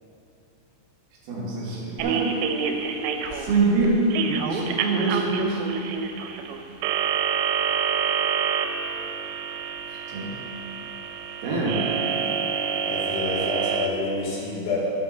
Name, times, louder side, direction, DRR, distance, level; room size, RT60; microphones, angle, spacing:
voice 1, 1.3-2.2 3.3-5.6 10.1-10.4 11.4-11.9, right 3 dB, 65° right, -6 dB, 2.5 m, -24 dB
sound 1, 2.0-13.9, right 7 dB, 90° right, 3.2 m, -27 dB
voice 2, 12.8-15.0, left 2 dB, 90° left, -5 dB, 4.1 m, -28 dB
9.2 x 8.0 x 3.8 m, 2.8 s
omnidirectional pair, 5.8 m